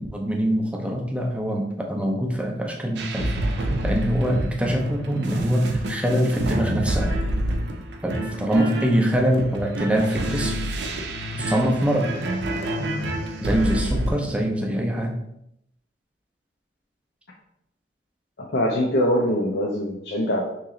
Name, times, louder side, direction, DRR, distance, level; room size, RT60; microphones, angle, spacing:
voice 1, 0.0-3.3 3.8-7.2 8.0-10.6 11.3-12.1 12.8-15.2, equal, 5° right, 1 dB, 0.4 m, -24 dB
sound 1, 3.0-14.1, right 1 dB, 65° right, 0.5 m, -28 dB
voice 2, 18.4-20.4, equal, 60° left, -1 dB, 0.5 m, -23 dB
3.0 x 2.9 x 3.7 m, 0.79 s
head